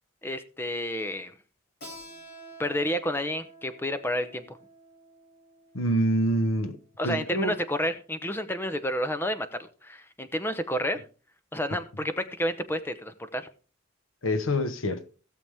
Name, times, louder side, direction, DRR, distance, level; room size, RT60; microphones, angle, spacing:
voice 1, 0.2-1.3 2.6-4.4 7.0-11.0 11.5-13.5, equal, 10° left, 0.8 m, -30 dB
Keyboard (musical), 1.8-7.1, right 2 dB, 50° left, 2.8 m, -49 dB
voice 2, 5.7-6.8 7.0-7.5 14.2-15.1, equal, 90° left, 1.1 m, -26 dB
16.5 x 7.1 x 3.5 m
head